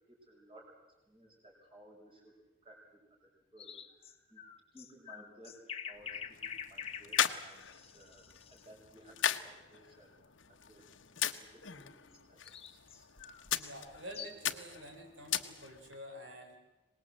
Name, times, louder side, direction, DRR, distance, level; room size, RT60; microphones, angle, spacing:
voice 1, 0.1-0.7 1.1-4.4 4.7-10.1 10.5-10.9 11.3-13.1, right 1 dB, 25° right, -1 dB, 5.5 m, -59 dB
sound 1, 3.6-8.7 12.1-14.5, left 8 dB, 30° left, 1.1 m, -46 dB
sound 2, 5.9-16.0, left 9 dB, 90° left, 1.1 m, -39 dB
voice 2, 13.5-16.6, equal, 85° right, 3 dB, 4.3 m, -48 dB
24.5 x 20.0 x 7.7 m, 1.1 s
head